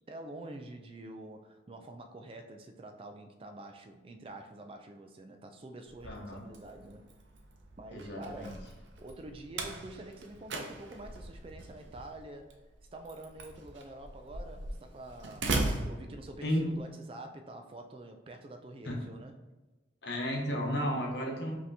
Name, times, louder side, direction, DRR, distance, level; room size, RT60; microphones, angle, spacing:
voice 1, 0.1-7.1 7.8-8.7 9.0-12.6 12.9-19.3, right 2 dB, 30° right, 5 dB, 0.3 m, -47 dB
Slam, 5.9-16.8, right 2 dB, 85° right, 0.6 m, -39 dB
voice 2, 6.0-6.5 7.9-8.6 16.4-16.7 18.8-19.0 20.0-21.6, equal, 65° left, 1 dB, 0.8 m, -33 dB
5.2 x 2.8 x 2.7 m, 1.2 s
head